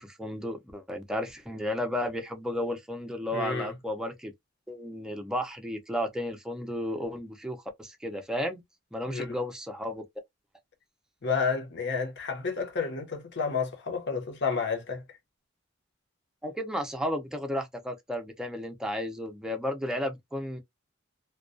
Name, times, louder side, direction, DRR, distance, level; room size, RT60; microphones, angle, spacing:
voice 1, 0.0-4.3 4.7-8.6 8.9-10.0 16.4-20.6, left 1 dB, 5° right, 0.5 m, -33 dB
voice 2, 3.3-3.7 9.1-9.4 11.2-15.2, left 5 dB, 60° left, 0.8 m, -31 dB
2.2 x 2.2 x 2.5 m
head